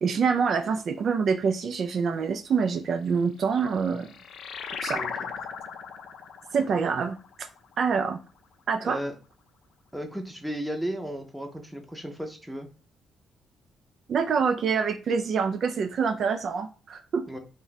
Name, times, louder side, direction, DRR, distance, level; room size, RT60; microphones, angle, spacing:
voice 1, 0.0-4.1 4.8-5.0 6.5-7.2 7.8-8.2 8.7-9.0 14.1-17.2, right 5 dB, 55° right, 7 dB, 0.3 m, -26 dB
sound 1, 3.5-8.5, left 6 dB, 75° left, 0.4 m, -38 dB
voice 2, 4.9-5.3 8.8-9.1 9.9-12.7 17.3-17.4, equal, ahead, 4 dB, 0.6 m, -34 dB
2.6 x 2.2 x 3.9 m, 0.36 s
cardioid pair, 90°, 0 cm